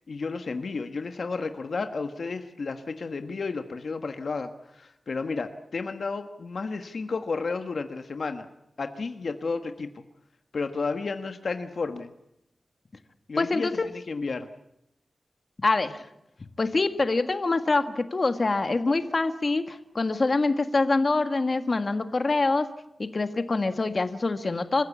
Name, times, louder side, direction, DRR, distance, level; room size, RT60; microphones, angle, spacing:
voice 1, 0.1-8.5 8.8-10.0 10.5-12.1 13.3-14.5, left 4 dB, 65° left, 7 dB, 1.3 m, -32 dB
voice 2, 13.4-13.7 15.6-16.0 16.6-22.7 23.0-24.8, left 3 dB, 40° left, 8 dB, 1.6 m, -25 dB
27.5 x 15.5 x 8.4 m, 0.84 s
wide cardioid pair, 135°, 0 cm